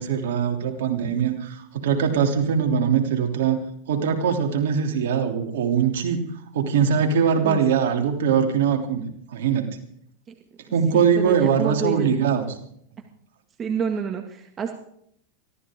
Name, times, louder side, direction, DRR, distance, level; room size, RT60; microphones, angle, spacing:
voice 1, 0.0-3.6 3.9-6.3 6.5-9.7 10.7-12.5, right 7 dB, 80° right, 4 dB, 3.1 m, -22 dB
voice 2, 10.9-12.1 13.6-14.7, right 6 dB, 30° right, 4 dB, 2.1 m, -28 dB
24.0 x 15.5 x 3.8 m, 0.68 s
hypercardioid pair, 115°, 0 cm